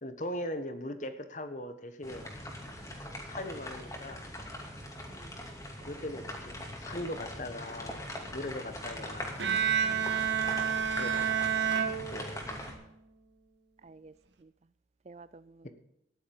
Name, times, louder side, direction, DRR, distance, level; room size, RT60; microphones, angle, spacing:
voice 1, 0.0-2.3 3.2-4.3 5.9-8.1 8.3-9.4 10.7-11.7 12.1-12.7 15.6-15.7, left 1 dB, 40° left, 1.3 m, -40 dB
sound 1, 2.0-12.7, left 1 dB, 20° left, 2.5 m, -42 dB
Bowed string instrument, 9.4-12.7, right 8 dB, 75° right, 1.4 m, -29 dB
voice 2, 9.8-11.1 13.8-14.1 14.4-14.5 15.1-15.7, right 3 dB, 35° right, 0.4 m, -53 dB
14.0 x 11.0 x 5.4 m
head